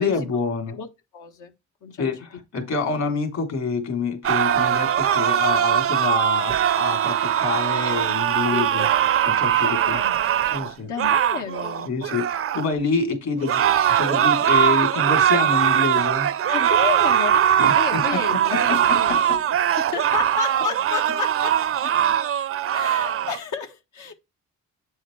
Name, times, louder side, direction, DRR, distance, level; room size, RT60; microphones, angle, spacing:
voice 1, 0.0-0.8 2.0-8.9 9.2-10.0 10.5-10.9 11.9-16.3 17.6-18.2 18.5-19.2 22.0-22.1, left 4 dB, 65° left, 3.5 m, -27 dB
voice 2, 0.7-1.5 1.8-2.1 8.5-8.7 9.6-10.2 10.8-11.9 16.5-19.4 19.8-21.6 22.7-24.1, left 6 dB, 80° left, 1.4 m, -31 dB
sound 1, 4.2-12.7 13.4-23.4, right 10 dB, 50° right, 0.5 m, -21 dB
8.5 x 6.3 x 3.3 m
cardioid pair, 90°, 30 cm